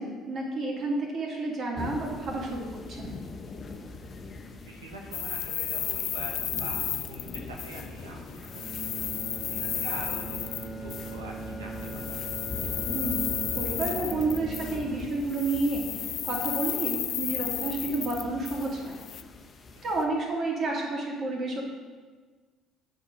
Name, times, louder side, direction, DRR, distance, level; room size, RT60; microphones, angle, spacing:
voice 1, 0.0-3.1 12.9-18.9 19.8-21.6, right 2 dB, 50° right, -2 dB, 2.4 m, -30 dB
sound 1, 1.7-20.0, left 3 dB, 40° left, 1.0 m, -42 dB
voice 2, 4.7-8.7 9.1-9.2 9.5-12.5, right 2 dB, 90° right, 0 dB, 0.9 m, -44 dB
sound 2, 5.1-8.1 8.4-11.2 11.8-15.0 15.3-19.2, left 11 dB, 60° left, 0.3 m, -33 dB
Bowed string instrument, 8.4-16.6, right 4 dB, 10° right, 1.9 m, -42 dB
8.6 x 5.0 x 5.1 m, 1.4 s
hypercardioid pair, 55°, 0 cm